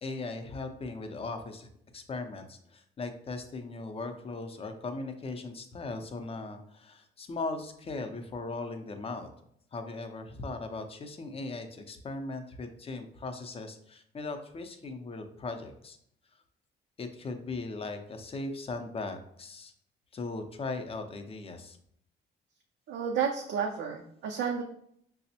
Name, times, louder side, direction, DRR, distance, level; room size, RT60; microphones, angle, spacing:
voice 1, 0.0-1.7 1.9-9.3 9.7-16.0 17.0-19.7 20.1-21.8, left 3 dB, 30° left, 6 dB, 0.5 m, -38 dB
voice 2, 22.9-24.6, right 7 dB, 75° right, 1 dB, 0.5 m, -31 dB
5.0 x 2.0 x 2.7 m, 0.68 s
cardioid pair, 90°, 20 cm